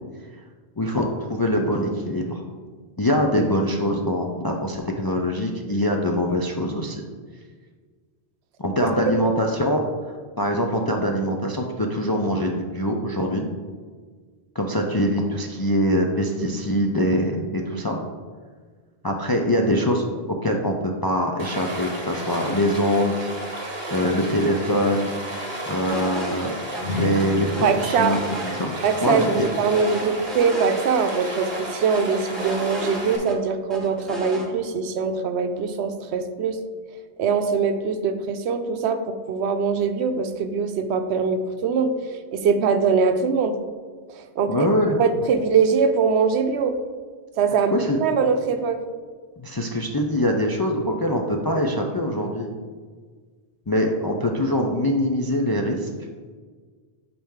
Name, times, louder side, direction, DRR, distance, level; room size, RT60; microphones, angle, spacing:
voice 1, 0.8-2.4 3.0-7.0 8.6-9.8 10.4-13.5 14.5-18.0 19.0-25.1 25.7-26.5 26.9-28.2 28.6-28.7 29.0-29.3 44.5-45.0 47.7-48.0 49.4-52.5 53.7-55.9, equal, 40° left, 1 dB, 0.3 m, -23 dB
Stream, 21.4-33.2, right 1 dB, 25° right, 1.2 m, -33 dB
sound 1, 25.9-26.4 26.7-26.8 27.2-29.0 29.3-30.8 31.1-31.2 31.5-33.4 33.7-34.5, right 1 dB, ahead, 0.9 m, -35 dB
sound 2, 26.7-30.5, left 4 dB, 80° left, 2.0 m, -34 dB
voice 2, 27.6-28.2 28.8-36.6 37.2-41.9 42.3-43.5 44.1-44.7 45.0-46.8 47.4-48.8, right 5 dB, 80° right, 8 dB, 0.9 m, -22 dB
8.6 x 4.3 x 3.6 m, 1.5 s
omnidirectional pair, 1.1 m